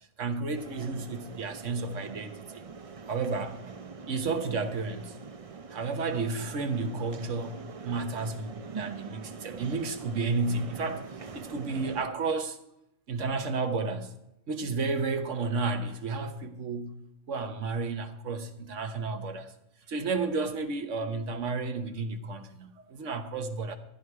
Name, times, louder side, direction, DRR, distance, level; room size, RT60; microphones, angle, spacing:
voice 1, 0.2-2.6 3.1-3.6 4.1-5.2 5.7-11.0 11.3-12.6 13.1-14.1 14.5-16.9 17.3-19.5 19.9-23.8, right 4 dB, 75° right, 1.4 m, -32 dB
sound 1, 0.5-12.1, right 4 dB, 35° right, 0.6 m, -43 dB
14.0 x 10.5 x 4.7 m
omnidirectional pair, 1.3 m